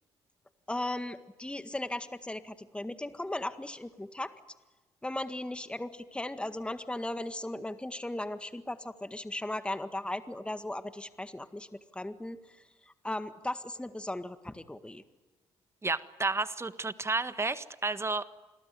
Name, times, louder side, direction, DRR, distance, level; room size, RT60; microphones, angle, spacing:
voice 1, 0.7-4.3 5.0-12.4 13.0-15.0, left 1 dB, 10° left, 10 dB, 1.8 m, -37 dB
voice 2, 15.8-18.2, right 3 dB, 25° right, 12 dB, 1.5 m, -31 dB
27.5 x 21.5 x 9.5 m, 1.2 s
supercardioid pair, 55°, 11 cm